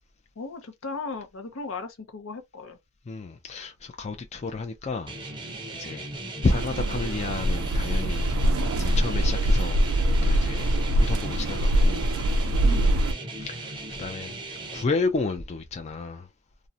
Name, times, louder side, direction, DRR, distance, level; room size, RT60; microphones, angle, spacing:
voice 1, 0.4-2.8 12.6-13.0, left 4 dB, 70° left, 0.6 m, -36 dB
voice 2, 3.1-5.1 5.7-6.1 6.4-8.3 8.8-10.0 10.2-12.1 13.4-14.4 14.7-16.3, left 3 dB, 30° left, 0.4 m, -31 dB
sound 1, 5.1-14.8, right 2 dB, 25° right, 0.5 m, -38 dB
sound 2, 6.4-13.1, right 1 dB, 90° right, 0.4 m, -23 dB
2.4 x 2.1 x 2.6 m
head